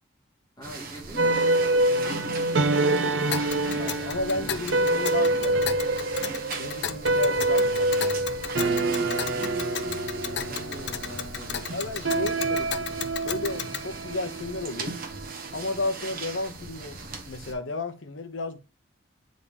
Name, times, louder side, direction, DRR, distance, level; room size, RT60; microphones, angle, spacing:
voice 1, 0.6-1.9 3.0-4.7 8.6-12.3, right 1 dB, 20° left, 2.7 m, -44 dB
sound 1, 0.6-17.5, right 3 dB, 45° right, 1.1 m, -39 dB
sound 2, 1.2-15.7, right 2 dB, 70° right, 0.7 m, -26 dB
voice 2, 1.7-2.3 3.8-5.7 6.6-8.2 11.7-12.9 13.2-15.0 15.5-17.0 17.2-18.6, left 2 dB, 85° left, 1.1 m, -33 dB
Tick, 3.3-13.9, left 8 dB, 60° left, 0.6 m, -36 dB
8.5 x 3.9 x 3.4 m
head